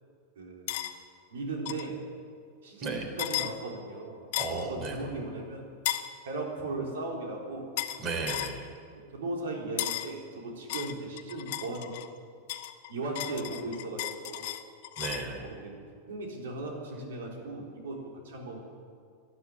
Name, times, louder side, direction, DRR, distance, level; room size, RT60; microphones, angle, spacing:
voice 1, 0.4-0.8 1.3-2.0 2.6-5.6 6.3-7.7 9.1-12.0 12.9-14.5 15.4-15.7 16.1-18.7, right 2 dB, 85° right, 0 dB, 4.0 m, -37 dB
sound 1, 0.7-0.9 1.7-1.9 3.2-3.5 4.3-4.7 5.9-6.1 7.8-8.0 8.3-8.6 9.8-10.1 10.7-12.1 12.5-15.3, left 14 dB, 65° left, 1.0 m, -34 dB
voice 2, 4.4-5.1 8.0-8.6 15.0-15.5, right 3 dB, 40° right, 4 dB, 3.7 m, -34 dB
12.5 x 11.0 x 9.6 m, 2.2 s
hypercardioid pair, 120°, 0 cm